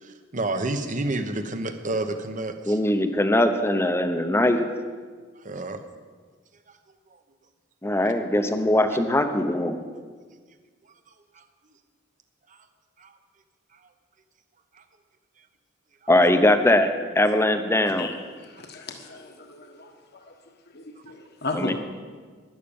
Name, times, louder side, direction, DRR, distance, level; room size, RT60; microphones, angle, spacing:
voice 1, 0.0-2.8 5.4-5.8 11.3-11.4 12.5-12.6 13.0-13.1 14.7-14.8 18.6-18.7, right 2 dB, 40° right, 8 dB, 1.0 m, -30 dB
voice 2, 2.7-4.6 7.8-9.8 16.1-18.1 21.5-21.7, left 1 dB, 15° left, 8 dB, 0.8 m, -21 dB
voice 3, 18.4-19.9 20.7-21.7, left 3 dB, 55° left, 4 dB, 1.4 m, -35 dB
12.0 x 10.5 x 7.1 m, 1.5 s
head